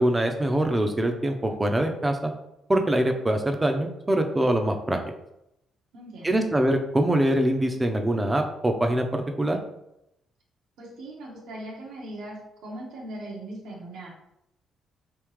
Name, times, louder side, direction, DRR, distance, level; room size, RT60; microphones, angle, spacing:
voice 1, 0.0-2.3 2.7-5.0 6.2-9.6, right 1 dB, 15° right, 5 dB, 0.5 m, -24 dB
voice 2, 5.9-6.5 10.8-14.1, right 1 dB, 85° right, -3 dB, 1.2 m, -39 dB
3.6 x 2.8 x 3.1 m, 0.82 s
cardioid pair, 90°, 0 cm